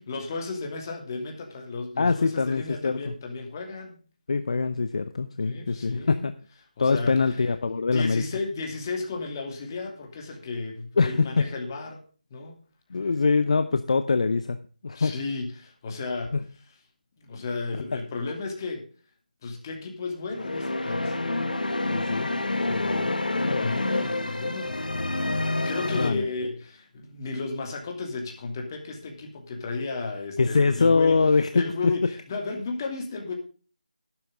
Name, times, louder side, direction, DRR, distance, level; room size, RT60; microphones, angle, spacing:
voice 1, 0.1-4.0 5.4-6.2 6.8-7.4 7.9-12.0 12.3-12.6 12.9-13.0 14.9-16.3 17.2-18.9 19.4-21.2 23.5-24.8 25.6-31.2 31.5-33.3, left 3 dB, 25° left, 2 dB, 2.7 m, -33 dB
voice 2, 2.0-3.0 4.3-6.3 6.8-8.2 11.0-11.1 12.9-14.6 14.8-15.1 16.3-16.4 21.9-22.3 22.7-23.1 23.4-23.8 25.9-26.2 30.4-31.7, left 4 dB, 45° left, 11 dB, 0.7 m, -23 dB
sound 1, 20.3-26.1, left 2 dB, 70° left, 2.1 m, -28 dB
12.0 x 11.5 x 3.6 m, 0.38 s
figure-of-eight pair, 165°, 5 cm